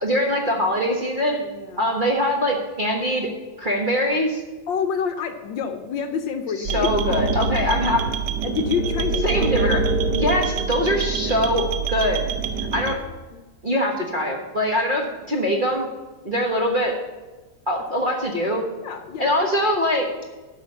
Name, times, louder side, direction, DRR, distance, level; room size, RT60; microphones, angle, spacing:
voice 1, 0.0-1.4 1.8-3.3 3.6-4.4 6.6-8.1 9.2-9.9 10.1-12.3 12.7-13.0 13.6-15.9 16.2-16.9 17.7-18.6 19.2-20.1, left 1 dB, 30° right, 0 dB, 1.1 m, -23 dB
voice 2, 1.3-1.9 4.7-6.9 8.4-9.4 11.1-11.2 13.3-13.4 16.3-16.5 18.8-19.5, left 6 dB, 70° left, 8 dB, 1.3 m, -28 dB
sound 1, 6.6-12.9, right 4 dB, 65° right, 1.3 m, -25 dB
11.5 x 6.0 x 6.9 m, 1.2 s
omnidirectional pair, 2.3 m